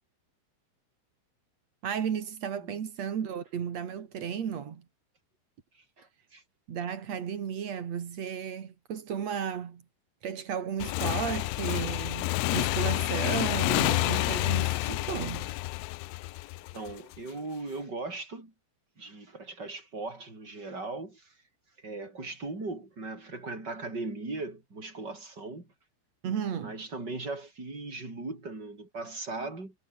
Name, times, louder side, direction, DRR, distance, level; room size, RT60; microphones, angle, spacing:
voice 1, 1.8-4.8 6.7-9.8 10.2-15.5 26.2-26.8, right 8 dB, 50° right, 2.3 m, -34 dB
voice 2, 5.7-6.4 16.7-18.5 19.0-21.4 21.8-25.7 26.6-29.7, right 3 dB, 20° right, 7.8 m, -38 dB
Motorcycle / Engine, 10.8-17.2, left 20 dB, 85° left, 3.0 m, -29 dB
omnidirectional pair, 5.7 m